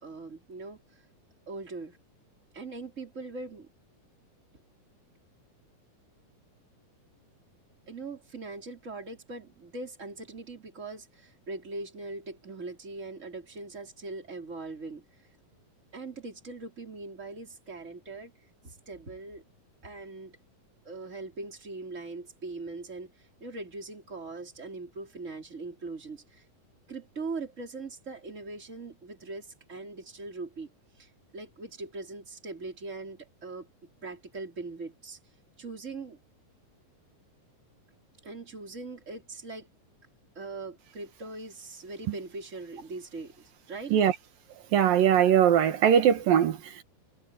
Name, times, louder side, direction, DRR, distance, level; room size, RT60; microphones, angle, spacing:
voice 1, 0.0-1.0 1.5-2.0 2.5-3.7 7.9-15.0 15.9-18.3 18.6-19.4 19.8-20.4 20.8-26.4 26.9-30.7 31.0-33.7 34.0-35.2 35.6-36.2 38.2-39.7 40.3-43.9, right 3 dB, 20° right, 4.3 m, -41 dB
voice 2, 44.7-46.8, right 9 dB, 75° right, 3.4 m, -21 dB
omnidirectional pair, 4.0 m